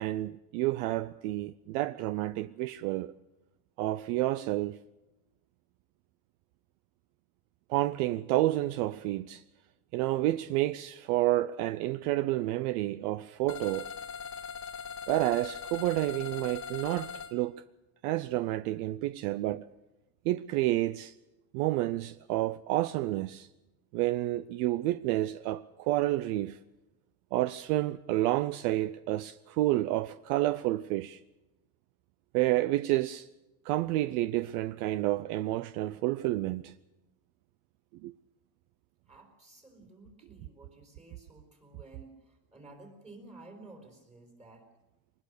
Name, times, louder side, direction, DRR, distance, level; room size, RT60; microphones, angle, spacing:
voice 1, 0.0-3.1 3.8-4.8 7.7-9.4 9.9-13.9 15.1-17.6 18.0-19.7 20.2-21.1 21.5-23.5 23.9-26.6 27.3-31.2 32.3-33.3 33.6-36.7 38.0-38.1, right 16 dB, 65° right, 0.6 m, -30 dB
sound 1, 13.5-17.3, left 6 dB, 25° left, 1.6 m, -41 dB
voice 2, 39.1-44.7, right 2 dB, 15° right, 4.3 m, -53 dB
23.5 x 20.0 x 6.7 m
cardioid pair, 170°, 49 cm